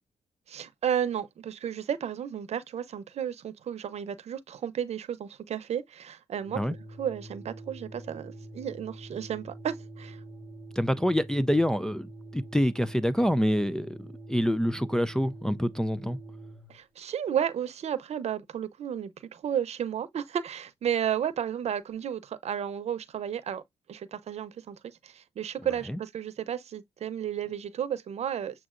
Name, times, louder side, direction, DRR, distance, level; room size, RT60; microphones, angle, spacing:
voice 1, 0.5-6.6 7.0-10.2 16.7-23.6 23.9-28.7, right 9 dB, 60° right, 0.8 m, -33 dB
Organ, 6.4-16.7, right 1 dB, 15° right, 1.3 m, -45 dB
voice 2, 10.8-16.2 25.9-26.0, equal, 5° left, 0.3 m, -26 dB
7.3 x 2.6 x 2.5 m
cardioid pair, 100°, 12 cm